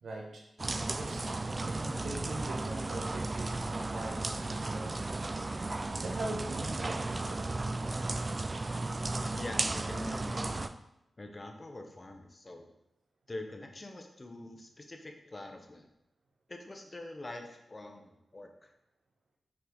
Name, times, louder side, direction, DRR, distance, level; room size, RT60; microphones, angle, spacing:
voice 1, 0.0-0.5 0.9-1.4 1.6-5.3 6.0-7.7, right 2 dB, 80° right, 0 dB, 1.2 m, -42 dB
sound 1, 0.6-10.7, right 2 dB, 30° right, 0.3 m, -34 dB
voice 2, 9.3-10.7 11.2-12.7 13.3-15.9 16.5-18.7, left 2 dB, 30° left, 4 dB, 0.8 m, -45 dB
5.9 x 4.8 x 3.8 m, 0.82 s
wide cardioid pair, 100°, 0 cm